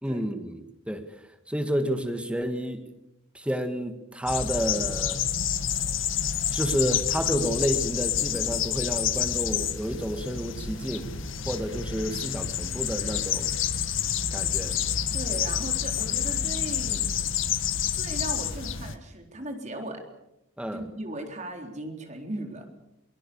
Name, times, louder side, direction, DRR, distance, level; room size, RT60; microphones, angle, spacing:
voice 1, 0.0-1.0 1.5-2.8 3.3-5.2 6.5-11.1 11.5-13.5 14.3-14.8 20.6-20.8, equal, 5° right, 7 dB, 1.8 m, -30 dB
sound 1, 4.3-18.9, left 8 dB, 85° left, 1.6 m, -28 dB
voice 2, 15.1-17.0 17.9-20.1 20.7-22.7, right 1 dB, 35° right, 4 dB, 3.9 m, -37 dB
23.0 x 21.5 x 7.1 m, 0.87 s
head